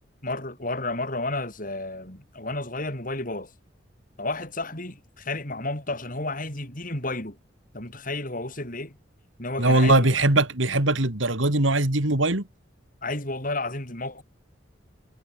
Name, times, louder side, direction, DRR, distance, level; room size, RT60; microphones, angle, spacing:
voice 1, 0.2-3.5 4.2-7.4 7.7-8.9 9.4-10.3 13.0-14.2, left 2 dB, 45° left, 7.4 m, -32 dB
voice 2, 9.6-12.5, right 2 dB, 90° right, 3.2 m, -21 dB
head